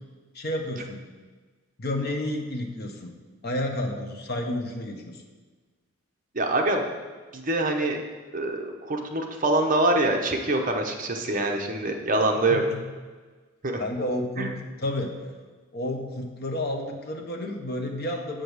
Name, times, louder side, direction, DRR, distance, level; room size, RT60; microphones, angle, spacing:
voice 1, 0.3-1.0 1.8-3.1 3.4-5.2 12.5-12.8 13.8-14.5 14.8-15.1 15.7-18.4, left 1 dB, 45° left, 3 dB, 1.0 m, -30 dB
voice 2, 6.3-6.8 7.3-8.0 8.3-12.6 13.6-13.8 14.4-14.5, right 2 dB, 35° right, 2 dB, 0.8 m, -25 dB
7.7 x 5.2 x 6.3 m, 1.4 s
head